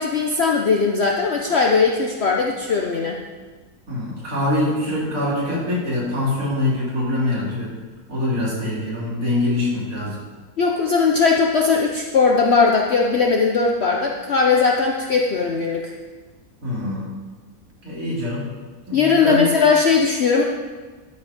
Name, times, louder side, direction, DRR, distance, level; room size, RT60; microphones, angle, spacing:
voice 1, 0.0-3.2 10.6-15.9 18.9-20.4, left 5 dB, 60° left, 1 dB, 0.7 m, -19 dB
voice 2, 3.9-7.7 8.1-10.2 16.6-17.1 17.8-18.4 18.9-19.5, left 1 dB, 55° right, -7 dB, 3.4 m, -24 dB
12.5 x 5.0 x 5.1 m, 1.4 s
omnidirectional pair, 1.7 m